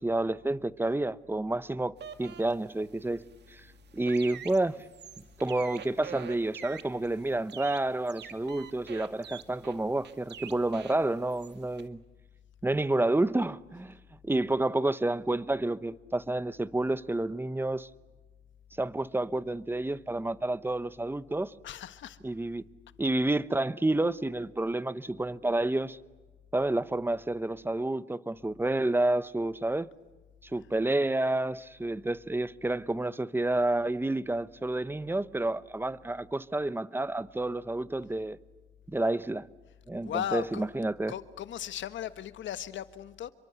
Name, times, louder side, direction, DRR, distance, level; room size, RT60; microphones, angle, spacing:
voice 1, 0.0-3.2 3.5-3.6 3.9-4.8 5.4-12.0 12.6-14.0 14.2-17.9 18.8-21.5 22.2-22.6 23.0-26.0 26.5-29.9 30.4-38.4 38.9-39.5 39.9-41.1, right 2 dB, 10° right, 0.8 m, -29 dB
sound 1, 2.0-11.9, right 8 dB, 60° right, 2.0 m, -47 dB
voice 2, 21.6-22.2 40.0-40.6 41.1-43.3, left 10 dB, 70° left, 1.4 m, -36 dB
29.0 x 23.5 x 8.1 m
cardioid pair, 90°, 20 cm